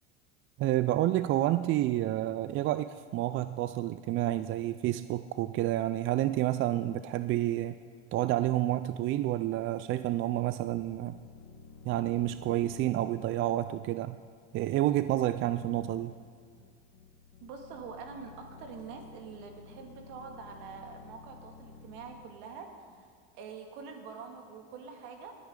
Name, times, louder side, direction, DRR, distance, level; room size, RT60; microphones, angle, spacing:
voice 1, 0.6-7.7 8.1-11.2 11.9-14.2 14.5-16.1, right 14 dB, 40° right, 12 dB, 0.4 m, -29 dB
sound 1, 10.7-23.2, left 4 dB, 50° left, 1.8 m, -53 dB
voice 2, 17.4-23.0 23.3-25.4, right 5 dB, 70° right, 3 dB, 2.2 m, -45 dB
20.0 x 9.5 x 3.8 m, 2.1 s
supercardioid pair, 105°, 31 cm